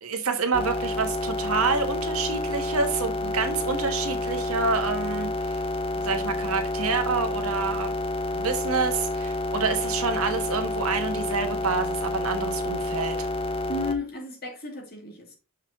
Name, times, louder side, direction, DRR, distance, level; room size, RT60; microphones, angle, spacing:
voice 1, 0.0-5.6 6.0-7.9 8.3-13.3, right 4 dB, 85° right, 1.5 m, -28 dB
sound 1, 0.5-14.0, left 2 dB, 25° left, 0.8 m, -29 dB
voice 2, 13.7-15.3, left 3 dB, 45° left, 2.3 m, -33 dB
6.2 x 5.5 x 3.6 m
head